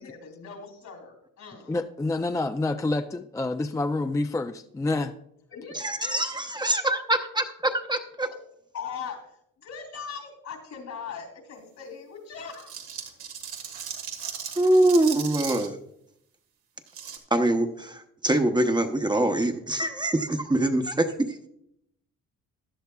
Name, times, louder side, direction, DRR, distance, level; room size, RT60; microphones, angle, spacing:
voice 1, 0.0-1.8 5.5-6.3 8.7-12.7, left 6 dB, 65° left, 6 dB, 2.9 m, -40 dB
voice 2, 1.7-5.1, left 2 dB, 10° left, 8 dB, 0.4 m, -28 dB
voice 3, 5.7-8.3 14.6-15.8 17.3-21.4, right 1 dB, 15° right, 5 dB, 0.8 m, -24 dB
sound 1, 12.5-15.7 16.9-17.2, right 7 dB, 85° right, 1.6 m, -37 dB
15.0 x 10.5 x 2.3 m, 0.75 s
cardioid pair, 90°, 30 cm